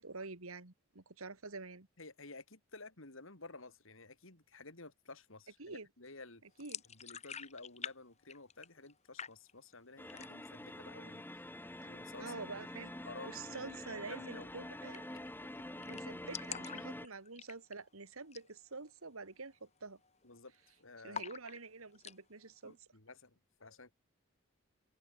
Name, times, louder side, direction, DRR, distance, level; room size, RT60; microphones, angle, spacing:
voice 1, 0.0-1.9 5.6-5.9 6.6-6.8 11.8-11.9 12.2-12.9 13.3-15.1 15.9-20.0 21.0-22.8, right 3 dB, 80° right, 2.0 m, -47 dB
voice 2, 2.0-6.4 6.9-11.3 11.8-13.6 14.1-14.5 15.1-15.3 20.2-21.2 22.6-23.9, left 3 dB, 65° left, 3.1 m, -53 dB
sound 1, 6.6-8.0 8.2-8.9 9.2-9.7 10.1-10.6 10.9-11.0 11.4-12.0 13.7-13.9 14.2-14.3 14.5-14.6 14.9-15.3 15.6-15.7 15.8-17.9 18.2-18.5 18.8-18.9 19.5-19.8 20.0-20.6 21.1-22.2, left 7 dB, 30° left, 2.4 m, -46 dB
sound 2, 10.0-17.1, left 1 dB, 10° left, 1.2 m, -47 dB
head